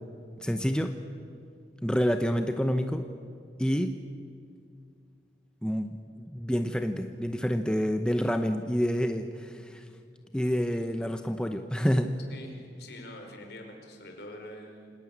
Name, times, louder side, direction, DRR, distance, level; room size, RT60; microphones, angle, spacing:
voice 1, 0.4-0.9 1.8-3.1 3.6-3.9 5.6-9.8 10.3-12.1, equal, 5° left, 6 dB, 0.9 m, -28 dB
voice 2, 12.3-15.0, left 1 dB, 65° left, 3 dB, 4.7 m, -45 dB
28.0 x 18.5 x 8.8 m, 2.2 s
head